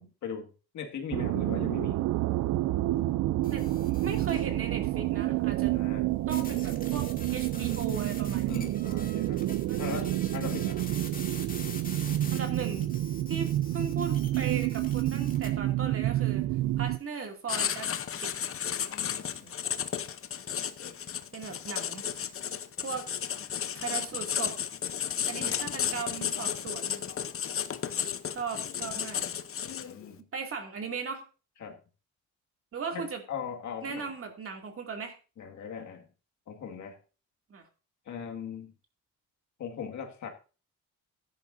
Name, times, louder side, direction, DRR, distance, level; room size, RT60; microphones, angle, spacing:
voice 1, 0.0-2.0 5.7-6.0 8.5-9.4 9.8-10.8 18.9-19.5 20.8-21.0 25.4-25.6 29.6-30.2 31.6-31.8 32.9-34.1 35.4-36.1 36.5-37.0 38.1-38.7 39.6-40.3, left 7 dB, 70° left, 3 dB, 2.1 m, -39 dB
sound 1, 1.1-17.0, right 16 dB, 75° right, 0.5 m, -29 dB
sound 2, 3.4-4.5 6.3-15.5, left 4 dB, 30° left, 2.2 m, -45 dB
voice 2, 3.5-5.7 6.3-8.5 9.7-10.2 12.3-13.0 13.3-16.5 16.8-17.9 18.2-18.3 19.4-19.5 21.3-22.0 22.8-23.1 23.8-24.6 25.2-27.1 28.3-29.2 30.3-31.2 32.7-33.2 33.8-35.1 37.5-37.7, right 5 dB, 45° right, 3 dB, 2.5 m, -37 dB
Writing, 17.5-30.1, left 9 dB, 45° left, 0.9 m, -33 dB
14.0 x 10.5 x 2.7 m, 0.34 s
cardioid pair, 90°, 30 cm